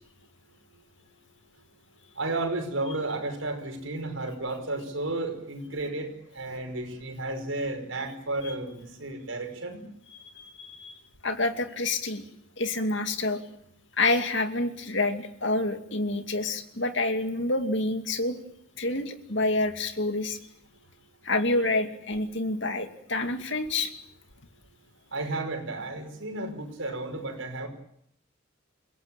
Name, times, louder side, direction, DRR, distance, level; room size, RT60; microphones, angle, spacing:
voice 1, 2.2-9.9 25.1-27.7, right 2 dB, 80° right, 5 dB, 5.5 m, -33 dB
voice 2, 10.1-12.2 12.6-13.4 14.0-18.4 18.8-20.4 21.2-23.9, left 2 dB, 65° left, 7 dB, 2.5 m, -28 dB
29.0 x 17.0 x 8.9 m, 0.72 s
head